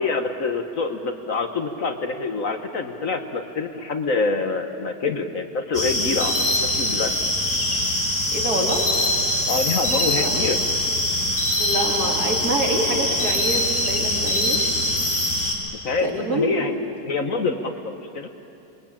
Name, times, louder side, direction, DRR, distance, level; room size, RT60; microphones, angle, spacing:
voice 1, 0.0-7.1 9.5-10.6 15.7-16.7 17.1-18.3, left 4 dB, 55° left, 6 dB, 1.5 m, -26 dB
sound 1, 5.7-15.5, left 1 dB, 35° left, 3.9 m, -23 dB
voice 2, 8.3-8.9 10.2-10.5 11.6-14.7 16.0-16.5, right 1 dB, 60° right, -2 dB, 4.2 m, -26 dB
26.5 x 22.0 x 8.8 m, 2.7 s
omnidirectional pair, 1.8 m